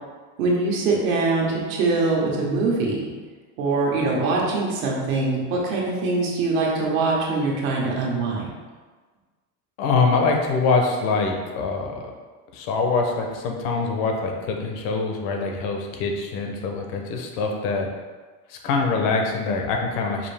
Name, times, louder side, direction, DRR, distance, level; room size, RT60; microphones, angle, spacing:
voice 1, 0.4-3.1 3.6-8.5, right 3 dB, 85° right, -3 dB, 1.2 m, -23 dB
voice 2, 9.8-12.1 12.5-17.9 18.5-20.3, left 4 dB, 80° left, 2 dB, 0.8 m, -24 dB
5.3 x 2.6 x 3.4 m, 1.4 s
cardioid pair, 160°, 39 cm